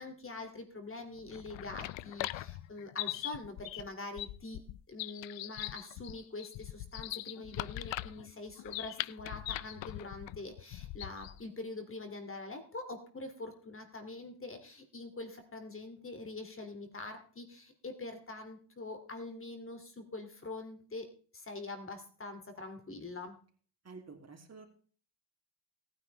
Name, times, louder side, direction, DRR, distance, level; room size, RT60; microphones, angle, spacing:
voice 1, 0.0-4.6 4.9-21.1 21.3-23.4, left 2 dB, 30° left, 6 dB, 2.6 m, -44 dB
sound 1, 1.2-11.4, left 16 dB, 80° left, 0.6 m, -41 dB
voice 2, 23.8-24.7, right 4 dB, 35° right, 3 dB, 2.8 m, -50 dB
18.5 x 9.6 x 3.3 m, 0.42 s
cardioid pair, 95°, 44 cm